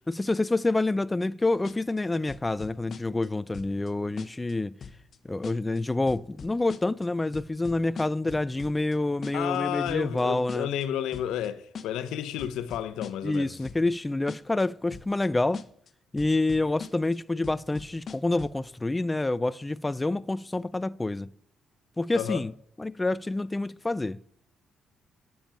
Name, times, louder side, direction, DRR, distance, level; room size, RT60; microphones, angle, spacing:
voice 1, 0.1-4.7 5.2-10.7 13.2-15.6 16.1-21.3 22.0-22.5 22.8-24.2, left 2 dB, 15° left, 0.4 m, -27 dB
sound 1, 1.6-2.0 2.3-3.3 3.5-3.9 4.2-4.5 4.8-5.2 5.4-5.8 6.1-7.1 7.3-9.0 9.2-9.6 9.9-10.2 10.5-10.8 11.1-11.5 11.7-12.1 12.4-13.4 13.6-14.0 14.3-14.6 14.9-15.3 15.5-15.9 16.2-17.2 17.4-18.6, left 6 dB, 50° left, 1.0 m, -42 dB
voice 2, 9.3-13.5 22.1-22.4, left 10 dB, 90° left, 0.9 m, -31 dB
10.0 x 7.1 x 8.9 m
cardioid pair, 90°, 0 cm